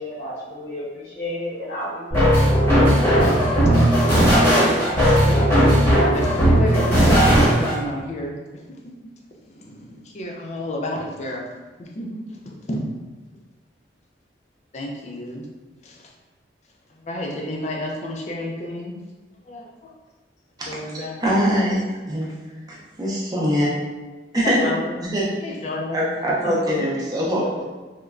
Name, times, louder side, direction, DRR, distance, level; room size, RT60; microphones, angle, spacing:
voice 1, 0.0-3.5 4.1-4.7, left 1 dB, 70° left, -12 dB, 1.0 m, -33 dB
sound 1, 2.1-7.8, equal, 10° left, 0.8 m, -16 dB
voice 2, 5.9-8.8 9.5-11.4 11.8-12.8 14.7-15.5 15.8-16.1 16.9-19.0 19.5-19.9 20.7-21.4 24.4-24.9 25.4-26.1 26.4-26.8, left 1 dB, 40° left, -1 dB, 0.4 m, -31 dB
voice 3, 21.2-21.8 22.1-22.3 22.7-23.7 24.3-24.7 25.1-25.3 25.9-27.6, equal, 20° right, -5 dB, 0.5 m, -22 dB
3.0 x 2.1 x 2.4 m, 1.2 s
head